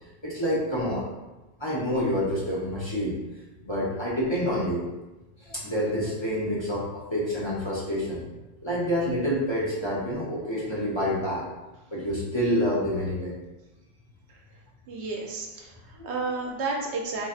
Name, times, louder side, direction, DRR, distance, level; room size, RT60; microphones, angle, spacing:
voice 1, 0.2-1.1 1.6-3.2 3.6-4.8 5.4-8.2 8.6-11.4 11.9-13.3 16.0-16.1, equal, 30° left, -7 dB, 0.6 m, -27 dB
voice 2, 14.9-17.3, right 3 dB, 85° right, 0 dB, 1.0 m, -32 dB
3.9 x 3.0 x 2.4 m, 1.1 s
omnidirectional pair, 1.1 m